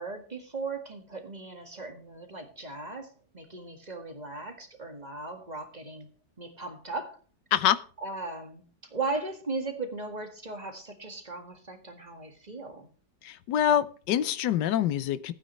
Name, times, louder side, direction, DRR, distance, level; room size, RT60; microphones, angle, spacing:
voice 1, 0.0-6.1 6.4-7.2 8.0-8.6 8.9-12.9, right 3 dB, 25° right, 5 dB, 1.9 m, -37 dB
voice 2, 13.2-15.3, left 10 dB, 85° left, 14 dB, 1.4 m, -25 dB
15.5 x 9.2 x 3.2 m, 0.39 s
omnidirectional pair, 1.8 m